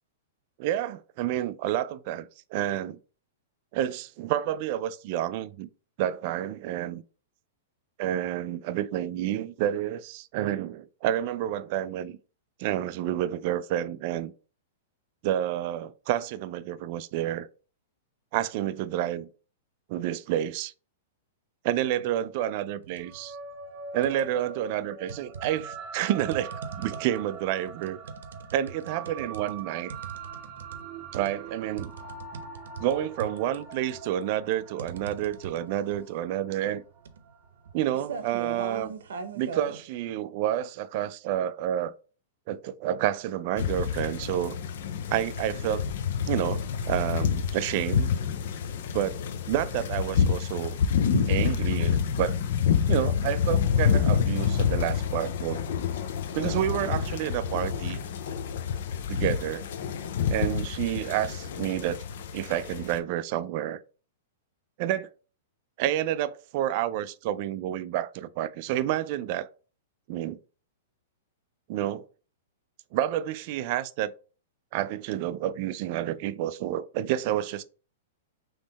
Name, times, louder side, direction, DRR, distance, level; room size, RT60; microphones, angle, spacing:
voice 1, 0.6-3.0 3.7-5.7 6.0-7.0 8.0-12.2 12.6-14.3 15.2-17.5 18.3-19.3 19.9-20.7 21.6-23.4 23.9-28.0 28.5-29.9 31.1-31.9 32.8-36.8 37.7-38.9 39.3-41.9 42.5-44.6 45.1-45.9 46.3-48.1 48.9-49.2 49.5-50.8 51.1-52.4 52.9-55.6 56.3-58.0 59.1-59.6 60.3-62.0 62.3-63.8 64.8-65.1 65.8-69.5 70.1-70.4 71.7-72.0 72.9-74.1 74.7-77.6, right 12 dB, 40° right, 0.3 m, -29 dB
sound 1, 22.8-23.2 23.6-24.5 25.1-39.8, right 5 dB, 90° right, 0.7 m, -41 dB
sound 2, 23.0-37.7, right 5 dB, 20° right, 0.8 m, -43 dB
sound 3, 43.6-63.0, left 7 dB, 60° left, 0.5 m, -28 dB
3.7 x 3.1 x 4.0 m
supercardioid pair, 160°, 0 cm